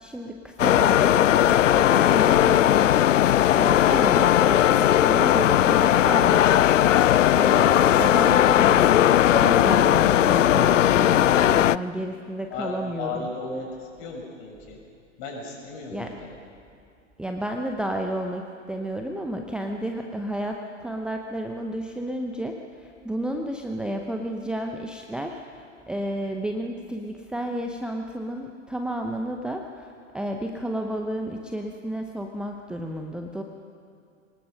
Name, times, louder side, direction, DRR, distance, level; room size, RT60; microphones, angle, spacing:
voice 1, 0.0-3.0 3.5-6.6 7.3-13.3 15.9-16.2 17.2-33.4, right 1 dB, ahead, 2 dB, 0.8 m, -31 dB
sound 1, 0.6-11.8, left 11 dB, 75° left, 0.5 m, -18 dB
voice 2, 12.5-13.7 14.0-14.8 15.2-16.3, left 3 dB, 40° left, 0 dB, 6.3 m, -35 dB
23.5 x 20.0 x 5.5 m, 2.4 s
figure-of-eight pair, 100°, 38 cm